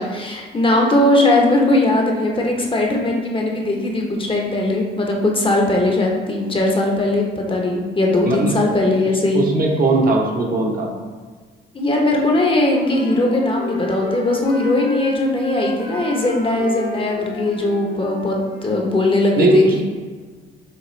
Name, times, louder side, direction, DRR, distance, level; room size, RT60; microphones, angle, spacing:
voice 1, 0.0-9.4 11.7-19.8, left 2 dB, 25° left, 0 dB, 0.8 m, -19 dB
voice 2, 9.3-10.9 19.4-19.8, right 2 dB, 45° right, 0 dB, 0.9 m, -18 dB
Wind instrument woodwind instrument, 12.0-18.8, left 1 dB, 45° left, 1.2 m, -32 dB
6.4 x 2.4 x 3.1 m, 1.5 s
cardioid pair, 90°, 20 cm